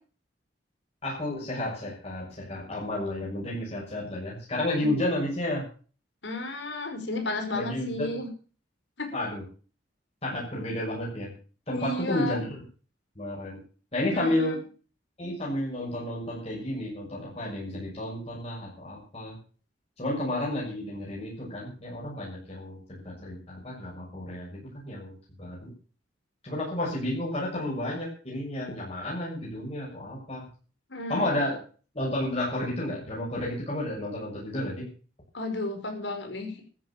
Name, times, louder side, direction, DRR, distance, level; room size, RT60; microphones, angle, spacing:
voice 1, 1.0-5.7 7.5-8.2 9.1-9.4 10.2-11.3 11.7-12.5 13.2-13.6 13.9-14.6 15.2-19.3 20.0-24.5 24.8-25.7 26.4-30.4 31.1-31.6 31.9-34.9, left 1 dB, 35° left, -5 dB, 6.5 m, -31 dB
voice 2, 6.2-8.3 9.0-9.1 11.7-12.4 14.1-14.6 30.9-31.4 35.3-36.7, left 2 dB, 75° left, 5 dB, 5.0 m, -33 dB
13.5 x 10.5 x 7.3 m, 0.40 s
head